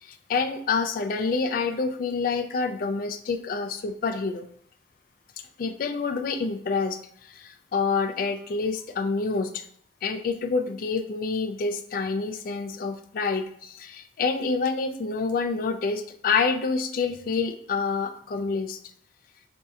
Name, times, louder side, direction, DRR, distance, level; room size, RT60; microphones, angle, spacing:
voice 1, 0.0-4.5 5.6-7.0 7.3-9.6 10.0-18.8, left 4 dB, 50° left, 7 dB, 0.3 m, -27 dB
2.6 x 2.4 x 4.1 m, 0.64 s
head